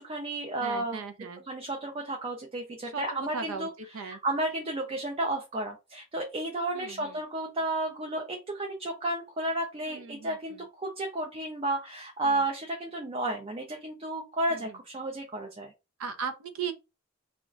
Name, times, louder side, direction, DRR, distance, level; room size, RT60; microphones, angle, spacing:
voice 1, 0.0-1.0 1.5-3.7 4.0-15.7, right 2 dB, 25° right, 0.4 m, -32 dB
voice 2, 0.6-1.4 2.8-3.7 3.9-4.2 6.7-7.2 9.9-10.6 12.2-12.4 14.5-14.8 16.0-16.7, right 6 dB, 80° right, 0.5 m, -38 dB
2.4 x 2.1 x 3.7 m
head